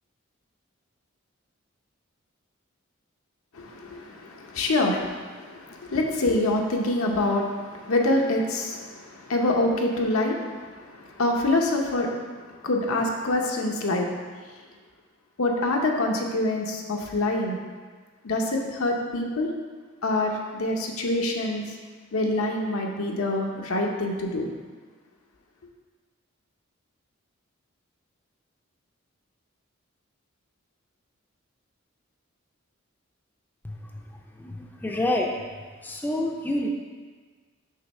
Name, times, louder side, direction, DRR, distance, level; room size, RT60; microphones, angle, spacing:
voice 1, 3.5-14.1 15.4-17.6 18.2-19.5 20.0-21.6 22.1-24.5, left 2 dB, 85° left, 1 dB, 0.8 m, -26 dB
voice 2, 33.6-34.0 34.3-35.3 35.8-36.7, left 1 dB, 10° left, 0 dB, 0.4 m, -28 dB
6.4 x 3.1 x 5.4 m, 1.5 s
head